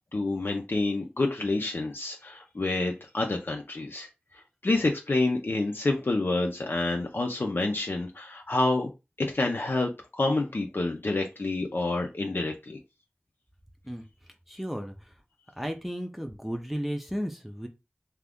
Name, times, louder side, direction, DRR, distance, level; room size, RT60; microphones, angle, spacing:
voice 1, 0.1-4.1 4.6-8.9 9.2-12.8, left 2 dB, 70° left, 1 dB, 0.6 m, -28 dB
voice 2, 14.5-15.1 15.6-17.7, equal, 5° right, 4 dB, 0.6 m, -34 dB
2.8 x 2.4 x 3.5 m, 0.26 s
wide cardioid pair, 40°, 4 cm